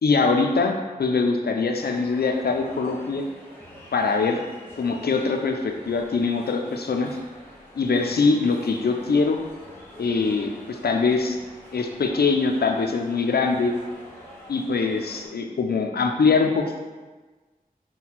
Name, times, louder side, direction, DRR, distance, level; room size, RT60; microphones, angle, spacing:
voice 1, 0.0-3.2 3.9-4.4 4.8-7.1 7.8-9.4 10.0-11.4 11.7-13.7 14.5-16.8, left 4 dB, 85° left, 3 dB, 0.4 m, -23 dB
sound 1, 1.7-15.3, equal, 15° left, 1.1 m, -46 dB
4.2 x 2.2 x 4.0 m, 1.3 s
wide cardioid pair, 60°, 16 cm